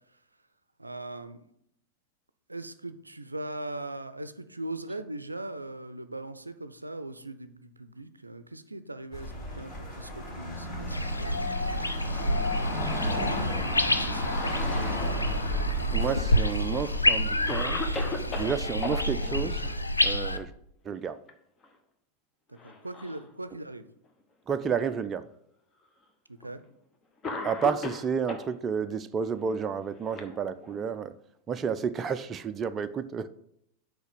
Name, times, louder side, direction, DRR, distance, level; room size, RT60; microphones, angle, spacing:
voice 1, 0.8-1.5 2.5-11.3 13.8-15.1 22.5-23.9 26.3-26.6, right 2 dB, 85° right, 0.5 m, -40 dB
sound 1, 9.1-19.7, equal, 40° left, 2.9 m, -34 dB
sound 2, 10.9-20.4, left 1 dB, 85° left, 0.5 m, -28 dB
Cough, 15.7-16.5 17.1-17.2 17.5-19.0 20.9-21.3 21.6-21.8 22.6-23.3 24.1-24.2 25.2-25.3 26.4-26.6 27.2-28.5 29.5-30.9, left 3 dB, 25° left, 1.2 m, -37 dB
voice 2, 15.9-17.8 18.3-19.6 20.0-20.5 20.8-21.2 24.5-25.3 27.4-31.1 31.5-33.3, right 6 dB, 25° right, 0.4 m, -31 dB
6.3 x 5.0 x 6.9 m
figure-of-eight pair, 90°, 0 cm